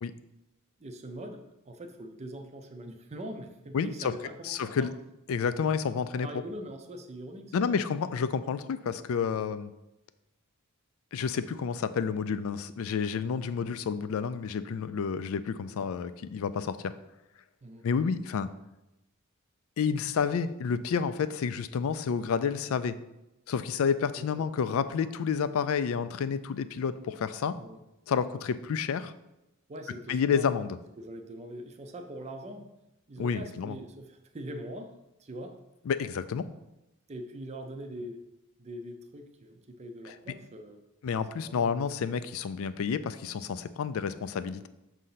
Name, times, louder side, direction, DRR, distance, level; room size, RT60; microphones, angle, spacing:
voice 1, 0.8-4.9 5.9-6.0 6.2-7.7 9.3-9.5 17.6-17.9 24.2-24.5 27.6-27.8 29.7-30.6 31.0-32.7 33.1-35.6 37.1-38.2 38.6-40.8 41.4-41.9, right 1 dB, 30° right, 5 dB, 0.5 m, -43 dB
voice 2, 3.7-4.1 4.4-4.9 5.3-6.3 7.5-9.7 11.1-16.9 17.8-18.5 19.8-23.0 23.5-27.6 28.1-29.1 30.1-30.8 33.2-33.8 35.9-36.5 41.0-44.7, left 6 dB, 65° left, 13 dB, 0.3 m, -30 dB
6.3 x 2.8 x 5.6 m, 0.93 s
head